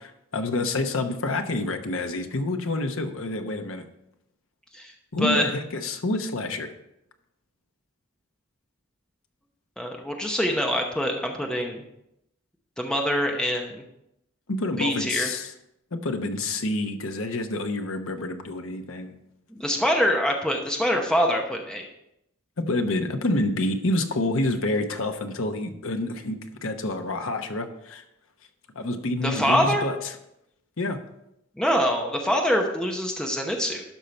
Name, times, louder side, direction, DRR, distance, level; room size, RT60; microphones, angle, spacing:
voice 1, 0.3-3.8 5.1-6.7 14.5-15.5 15.9-19.2 22.6-28.0 28.7-30.0 30.8-31.0, left 2 dB, 65° left, 6 dB, 0.9 m, -28 dB
voice 2, 9.8-11.8 12.8-13.8 14.8-15.3 19.5-21.9 29.2-29.8 31.6-33.8, equal, 5° left, 1 dB, 0.8 m, -24 dB
12.0 x 5.5 x 4.4 m, 0.82 s
head